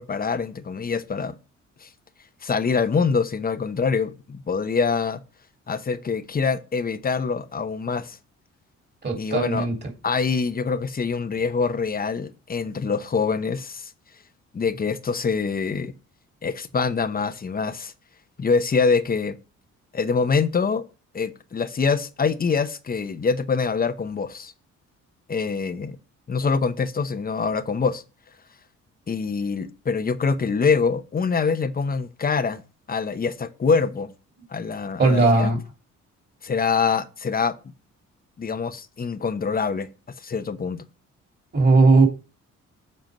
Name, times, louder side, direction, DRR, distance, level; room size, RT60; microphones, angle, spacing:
voice 1, 0.0-1.3 1.8-1.9 2.4-5.2 5.7-8.2 9.2-9.7 10.0-13.9 14.5-15.9 16.4-17.9 18.4-19.4 19.9-20.9 21.1-24.5 25.3-26.0 26.3-28.0 29.1-32.6 32.9-34.1 34.5-35.5 36.4-37.5 38.4-39.9 40.2-40.8, left 5 dB, 30° left, 0.9 m, -24 dB
voice 2, 9.0-9.7 35.0-35.6 41.5-42.1, right 3 dB, 35° right, 3.2 m, -17 dB
7.7 x 4.5 x 5.2 m
cardioid pair, 90°, 30 cm